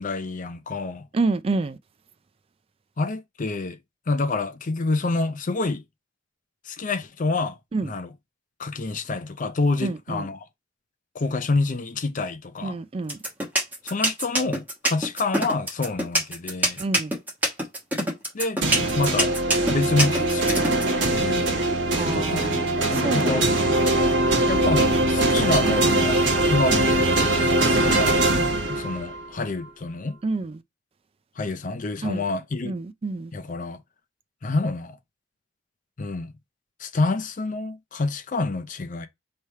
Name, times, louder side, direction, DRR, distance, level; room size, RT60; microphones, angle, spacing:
voice 1, 0.0-1.1 3.0-3.8 4.1-5.8 6.7-8.1 8.6-10.4 11.1-12.8 13.8-16.8 18.3-18.6 18.9-19.3 19.7-20.8 21.1-21.6 22.0-23.5 24.5-28.2 28.7-30.2 31.4-32.8 33.3-33.8 34.4-35.0 36.0-36.3 36.8-39.1, left 3 dB, 45° left, 0.6 m, -27 dB
voice 2, 1.1-1.8 7.7-7.9 9.8-10.3 12.6-13.2 16.8-17.1 21.9-23.3 23.6-23.8 30.2-30.6 32.0-32.2 32.6-33.3, right 3 dB, 30° right, 0.3 m, -28 dB
sound 1, 13.1-20.8, right 1 dB, 10° right, 1.2 m, -23 dB
sound 2, 18.6-29.2, right 2 dB, 65° right, 1.3 m, -22 dB
3.3 x 2.8 x 4.6 m
head